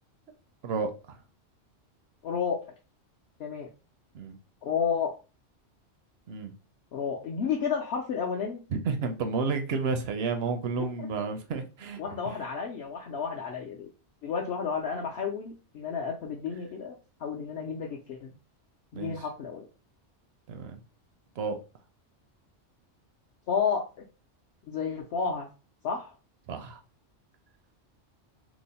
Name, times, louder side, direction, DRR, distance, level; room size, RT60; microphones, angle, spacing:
voice 1, 0.6-1.2 4.1-4.3 6.3-6.5 8.8-12.0 12.3-12.4 18.9-19.2 20.5-20.8 21.4-21.6 26.5-26.8, right 4 dB, 65° right, 0.7 m, -31 dB
voice 2, 2.2-2.6 3.4-3.7 4.6-5.1 6.9-8.6 12.0-13.9 14.2-18.3 18.9-19.7 23.5-23.8 24.7-25.5 25.8-26.1, left 6 dB, 65° left, 0.8 m, -31 dB
2.9 x 2.0 x 3.9 m
omnidirectional pair, 1.2 m